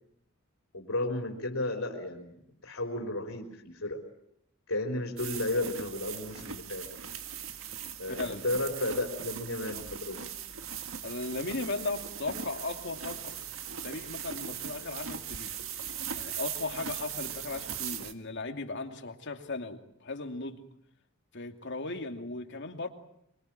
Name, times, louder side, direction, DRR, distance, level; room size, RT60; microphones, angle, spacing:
voice 1, 0.7-2.3 2.6-4.0 4.7-6.9 8.0-10.2, left 2 dB, 85° left, 3.9 m, -33 dB
sound 1, 5.2-18.1, right 8 dB, 70° right, 1.9 m, -39 dB
voice 2, 8.1-8.5 11.0-13.3 13.8-15.5 16.1-20.6 21.3-22.9, left 3 dB, 60° left, 2.7 m, -37 dB
25.0 x 24.0 x 8.9 m
head